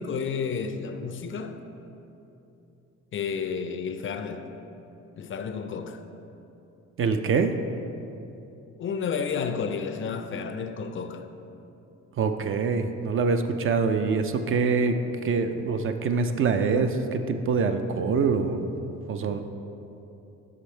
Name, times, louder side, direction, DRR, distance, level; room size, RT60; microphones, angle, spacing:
voice 1, 0.0-1.6 3.1-4.5 5.2-6.0 8.8-11.3, left 6 dB, 45° left, 0.4 m, -31 dB
voice 2, 7.0-7.5 12.2-15.0 15.2-18.7 19.1-19.4, right 5 dB, 45° right, 0.4 m, -25 dB
5.5 x 5.0 x 4.3 m
cardioid pair, 90°, 30 cm